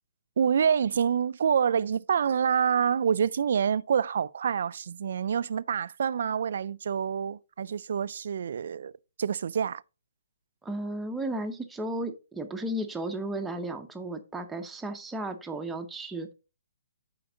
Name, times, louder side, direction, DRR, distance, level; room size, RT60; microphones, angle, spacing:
voice 1, 0.4-8.9 9.2-9.8, right 7 dB, 60° right, 0.3 m, -27 dB
voice 2, 10.6-16.3, right 1 dB, 5° right, 0.7 m, -34 dB
7.7 x 5.2 x 3.8 m
hypercardioid pair, 160°, 0 cm